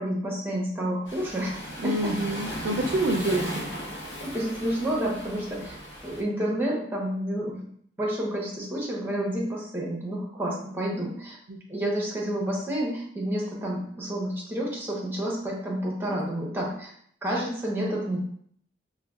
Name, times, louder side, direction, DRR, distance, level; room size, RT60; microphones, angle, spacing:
voice 1, 0.0-2.1 3.3-3.4 4.2-5.8 6.0-7.7 8.0-11.4 11.7-16.9 17.2-18.2, right 1 dB, 10° right, -3 dB, 0.7 m, -29 dB
Waves surf, 1.0-6.2, equal, 65° left, 1.0 m, -37 dB
voice 2, 1.8-3.6 11.5-11.6, right 1 dB, 80° right, 1 dB, 0.4 m, -27 dB
4.7 x 2.2 x 2.3 m, 0.64 s
head